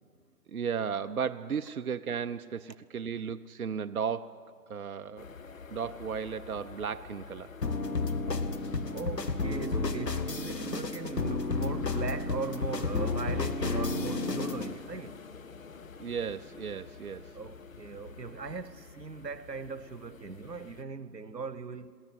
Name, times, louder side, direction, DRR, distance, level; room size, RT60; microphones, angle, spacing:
voice 1, 0.5-4.4 4.7-5.3 5.7-7.5 16.0-17.3, right 7 dB, 65° right, 0.6 m, -35 dB
sound 1, 5.2-20.8, left 5 dB, 55° left, 1.0 m, -48 dB
sound 2, 7.6-14.7, left 3 dB, 85° left, 1.5 m, -31 dB
voice 2, 8.9-15.2 17.3-21.9, right 4 dB, 90° right, 1.1 m, -39 dB
21.5 x 17.5 x 8.2 m
figure-of-eight pair, 150°, 48 cm